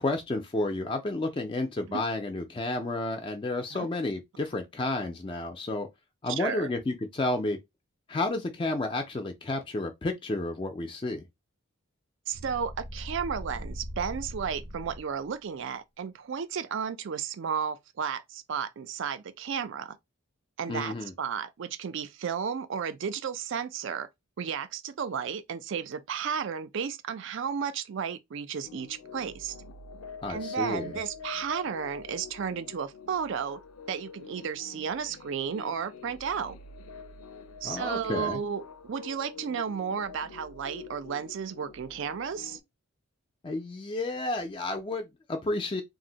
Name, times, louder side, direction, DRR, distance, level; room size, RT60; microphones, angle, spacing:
voice 1, 0.0-5.9 6.2-7.6 8.1-11.2 20.7-21.1 30.2-31.0 37.6-38.4 43.4-45.8, left 2 dB, 25° left, 0.3 m, -31 dB
voice 2, 6.4-6.7 12.3-20.0 20.6-24.1 24.4-29.5 30.3-33.6 33.9-36.5 37.6-42.6, right 7 dB, 60° right, 0.4 m, -33 dB
sound 1, 12.3-15.3, equal, 90° right, 0.8 m, -40 dB
sound 2, 28.6-42.6, left 5 dB, 90° left, 0.4 m, -46 dB
2.5 x 2.0 x 3.8 m
head